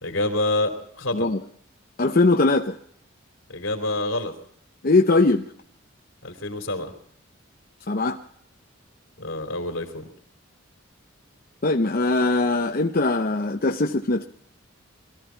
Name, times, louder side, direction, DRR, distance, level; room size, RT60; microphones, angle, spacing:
voice 1, 0.0-1.3 3.5-4.3 6.2-6.9 9.2-10.1, left 2 dB, 75° left, 5 dB, 3.2 m, -27 dB
voice 2, 2.0-2.8 4.8-5.5 7.9-8.2 11.6-14.2, left 2 dB, 45° left, 3 dB, 0.7 m, -21 dB
22.0 x 14.0 x 4.5 m, 0.65 s
head